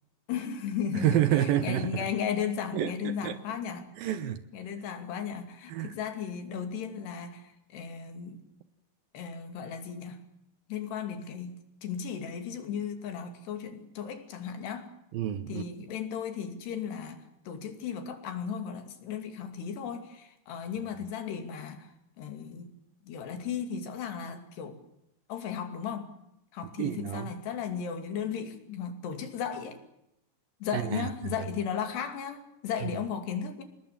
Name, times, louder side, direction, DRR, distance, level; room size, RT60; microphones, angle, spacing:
voice 1, 0.3-1.3 1.6-3.9 4.5-7.4 7.7-8.4 9.1-10.2 10.7-14.9 15.5-22.7 23.0-24.8 25.3-26.1 26.5-29.8 30.6-33.6, left 7 dB, 75° left, 4.6 m, -35 dB
voice 2, 0.9-2.1 2.7-3.4 4.0-4.4 5.7-6.0 15.1-15.6 26.8-27.3 30.7-31.1 31.4-31.5 32.8-32.9, right 12 dB, 70° right, 2.5 m, -29 dB
27.0 x 20.5 x 7.5 m
omnidirectional pair, 4.9 m